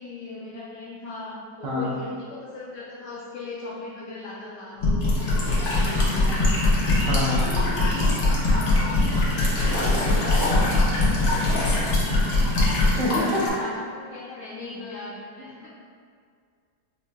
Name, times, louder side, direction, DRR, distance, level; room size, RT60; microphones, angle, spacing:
voice 1, 0.0-6.7 7.2-13.0 13.5-15.7, left 2 dB, 75° left, -5 dB, 1.1 m, -39 dB
sound 1, 4.8-13.0, left 2 dB, 35° left, 0.9 m, -22 dB
Walk footsteps / Chirp tweet / Stream, 5.0-13.5, left 1 dB, 55° left, 0.5 m, -29 dB
voice 2, 7.1-7.4 13.0-13.7, left 1 dB, 80° right, -6 dB, 1.5 m, -26 dB
5.7 x 2.8 x 2.3 m, 2.1 s
omnidirectional pair, 1.9 m